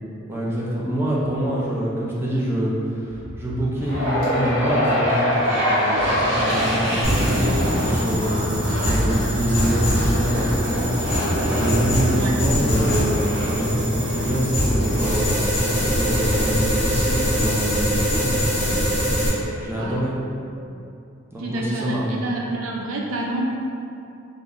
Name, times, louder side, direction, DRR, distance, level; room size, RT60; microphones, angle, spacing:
voice 1, 0.3-18.9 19.2-20.1 21.3-22.2, equal, 10° right, -6 dB, 0.3 m, -26 dB
sound 1, 3.0-6.0 11.0-14.2, left 1 dB, 80° left, 0.5 m, -40 dB
sound 2, 3.8-18.0, equal, 70° right, 0.9 m, -25 dB
sound 3, 7.0-19.3, equal, 25° left, 0.8 m, -24 dB
voice 2, 21.4-23.4, right 2 dB, 85° right, -2 dB, 0.4 m, -28 dB
2.5 x 2.0 x 3.5 m, 2.6 s
head